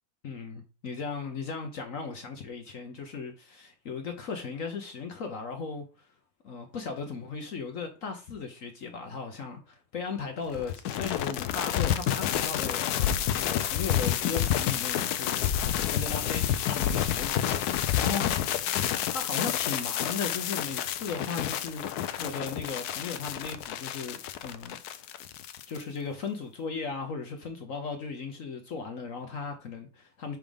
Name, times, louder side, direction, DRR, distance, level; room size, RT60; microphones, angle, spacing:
voice 1, 0.2-6.1 6.4-12.8 13.3-15.4 15.9-18.7 19.1-21.9 22.2-25.2 25.7-30.4, left 5 dB, 60° left, 0.9 m, -37 dB
sound 1, 10.5-25.8, left 10 dB, 85° left, 0.8 m, -29 dB
6.1 x 3.7 x 5.1 m
omnidirectional pair, 2.3 m